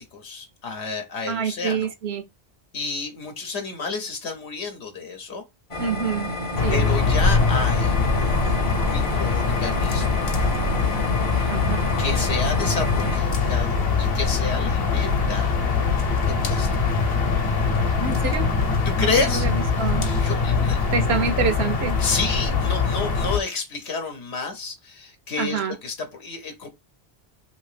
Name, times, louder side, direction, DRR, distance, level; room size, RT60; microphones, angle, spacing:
voice 1, 0.0-1.9 2.7-5.4 6.7-8.6 8.9-10.4 11.3-11.5 12.0-15.6 16.4-16.7 18.9-19.4 20.2-20.9 22.0-26.7, left 4 dB, 85° left, 1.0 m, -30 dB
voice 2, 1.3-2.2 5.8-6.3 6.6-6.8 11.5-11.8 18.0-18.5 19.0-20.1 20.9-22.0 25.4-25.8, right 6 dB, 80° right, 0.8 m, -26 dB
sound 1, 5.7-13.2, left 1 dB, 40° left, 0.6 m, -30 dB
sound 2, 6.6-23.4, left 4 dB, 65° left, 1.0 m, -22 dB
2.8 x 2.7 x 3.2 m
omnidirectional pair, 1.1 m